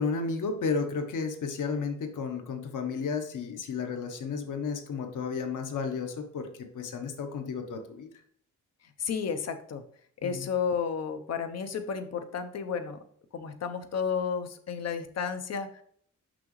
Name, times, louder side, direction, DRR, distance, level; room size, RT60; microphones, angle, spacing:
voice 1, 0.0-6.5 6.7-8.1 10.2-10.5, left 5 dB, 80° left, 5 dB, 1.1 m, -32 dB
voice 2, 9.0-9.8 10.2-13.0 13.3-15.8, left 6 dB, 55° left, 8 dB, 0.8 m, -32 dB
6.1 x 6.0 x 3.1 m, 0.62 s
wide cardioid pair, 170°, 31 cm